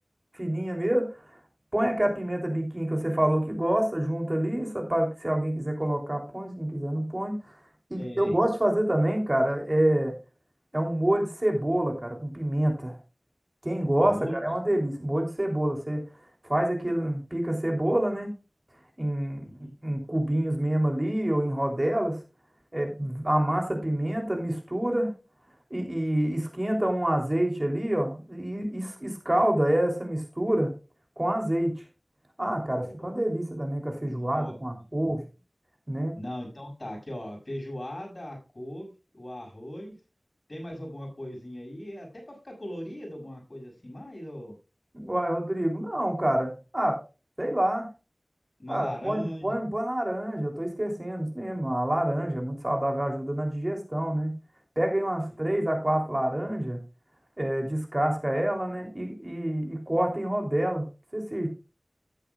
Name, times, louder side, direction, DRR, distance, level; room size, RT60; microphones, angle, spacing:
voice 1, 0.3-1.0 1.7-7.6 7.9-10.1 10.7-13.0 13.6-16.0 16.5-18.3 19.0-22.2 22.7-25.1 25.7-30.7 31.2-31.7 32.4-35.2 35.9-36.2 44.9-47.0 47.4-47.9 48.7-54.3 54.8-56.8 57.4-60.8 61.1-61.5, right 1 dB, 30° right, 2 dB, 3.3 m, -27 dB
voice 2, 8.0-8.3 14.0-14.4 19.4-19.7 32.8-33.1 34.0-34.5 36.2-40.0 40.5-44.5 48.6-49.5, equal, 50° left, 1 dB, 6.8 m, -39 dB
13.5 x 10.5 x 2.4 m, 0.31 s
wide cardioid pair, 45°, 0 cm